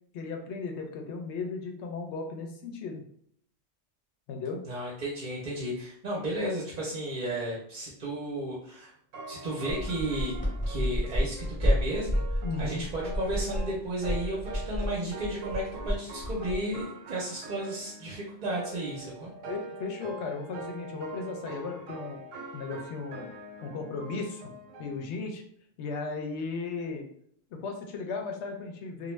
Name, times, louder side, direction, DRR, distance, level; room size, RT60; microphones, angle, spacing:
voice 1, 0.1-3.0 4.3-4.6 12.4-12.9 19.5-22.2 22.5-23.3 23.6-24.5 24.8-25.4 25.8-27.1 27.5-29.1, left 4 dB, 70° left, 2 dB, 0.8 m, -36 dB
voice 2, 4.7-8.9 9.3-10.3 10.7-19.3, right 1 dB, 50° right, -4 dB, 0.6 m, -33 dB
sound 1, 9.1-25.0, right 3 dB, 85° right, 1.0 m, -44 dB
sound 2, 9.7-16.8, equal, 5° left, 0.9 m, -31 dB
2.4 x 2.1 x 3.1 m, 0.66 s
omnidirectional pair, 1.3 m